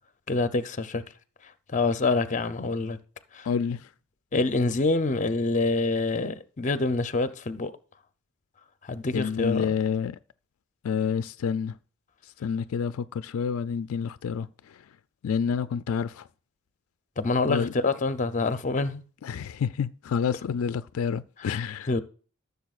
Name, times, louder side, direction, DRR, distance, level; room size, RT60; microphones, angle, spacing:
voice 1, 0.3-1.0 1.7-3.0 3.3-3.5 4.3-7.7 8.8-9.7 17.2-19.0 21.4-22.0, left 3 dB, 35° left, 0.6 m, -26 dB
voice 2, 3.5-3.8 9.1-10.2 10.8-11.7 12.4-14.5 15.2-16.2 17.5-17.7 19.2-21.9, left 6 dB, 80° left, 0.4 m, -28 dB
14.5 x 6.8 x 2.4 m
head